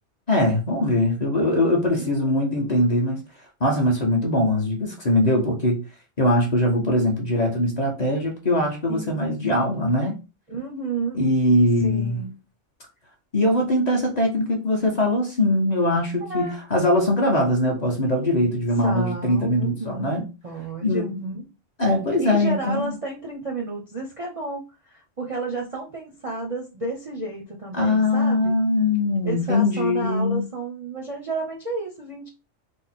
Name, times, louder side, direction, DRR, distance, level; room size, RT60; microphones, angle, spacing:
voice 1, 0.3-3.2 3.6-5.9 6.2-10.2 11.2-12.2 13.3-20.3 20.8-21.0 21.8-23.0 27.7-30.5, left 1 dB, 40° left, 0.8 m, -21 dB
voice 2, 2.0-2.7 8.9-9.6 10.5-11.2 11.8-12.4 16.2-16.6 18.8-21.5 22.2-28.5 29.2-32.3, right 3 dB, 40° right, 0.5 m, -31 dB
3.5 x 2.0 x 4.1 m
omnidirectional pair, 1.3 m